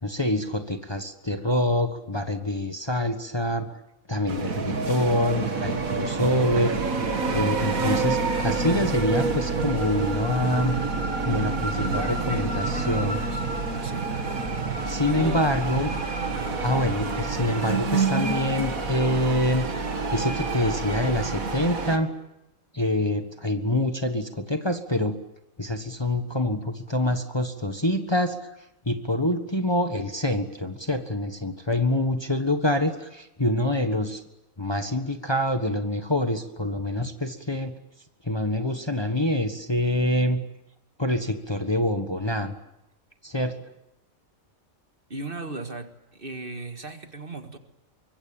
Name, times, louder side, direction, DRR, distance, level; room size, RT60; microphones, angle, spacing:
voice 1, 0.0-3.7 4.1-6.8 7.3-10.8 11.2-13.2 14.9-15.9 16.6-19.7 20.1-22.1 22.7-25.2 25.6-28.4 28.9-34.2 34.6-37.7 38.2-40.4 41.0-42.5 43.2-43.6, left 1 dB, 20° left, 7 dB, 1.4 m, -26 dB
sound 1, 4.3-22.0, right 4 dB, 90° right, 2.5 m, -28 dB
sound 2, 5.8-21.8, equal, 5° right, 7.4 m, -39 dB
voice 2, 11.7-13.5 13.7-14.1 15.0-15.4 16.3-16.7 45.1-47.6, right 3 dB, 40° right, 7 dB, 2.0 m, -37 dB
24.5 x 22.5 x 8.9 m, 0.90 s
omnidirectional pair, 1.4 m